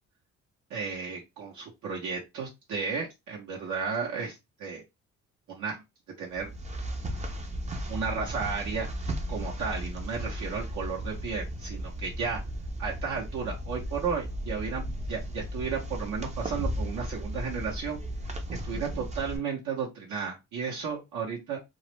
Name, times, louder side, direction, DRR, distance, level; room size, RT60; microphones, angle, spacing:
voice 1, 0.7-4.8 5.5-5.8 6.2-6.5 7.9-8.9 9.3-12.4 12.8-18.0 18.6-21.6, right 5 dB, 75° right, -3 dB, 0.9 m, -33 dB
sound 1, 6.3-19.4, equal, 25° right, 0.5 m, -35 dB
2.4 x 2.0 x 3.0 m, 0.21 s
cardioid pair, 90°, 30 cm